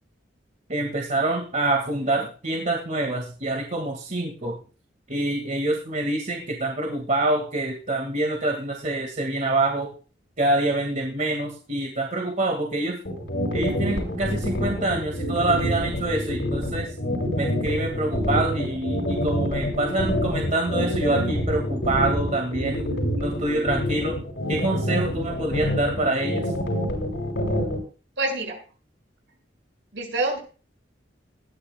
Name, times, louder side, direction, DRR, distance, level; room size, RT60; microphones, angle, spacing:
voice 1, 0.7-4.6 5.1-9.9 10.4-13.0 13.5-16.9 17.4-22.9 23.2-24.2 24.5-26.5, right 2 dB, 45° right, 1 dB, 2.0 m, -26 dB
sound 1, 13.1-27.8, left 1 dB, 75° left, 5.4 m, -26 dB
voice 2, 28.2-28.6 29.9-30.4, right 2 dB, 75° right, 1 dB, 6.2 m, -26 dB
19.5 x 13.0 x 2.3 m, 0.37 s
head